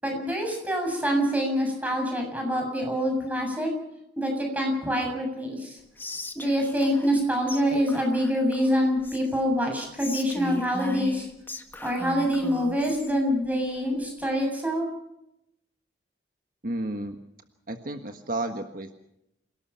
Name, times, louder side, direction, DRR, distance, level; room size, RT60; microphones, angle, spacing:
voice 1, 0.0-3.7 4.2-5.8 6.4-11.3 11.8-14.9, equal, 10° right, 2 dB, 7.4 m, -26 dB
Whispering, 6.0-7.2 7.5-7.6 7.9-9.4 10.0-13.1, left 1 dB, 10° left, 1.8 m, -38 dB
voice 2, 16.6-17.2 17.7-18.9, right 1 dB, 50° right, 5 dB, 1.5 m, -32 dB
28.0 x 18.5 x 5.8 m, 0.83 s
head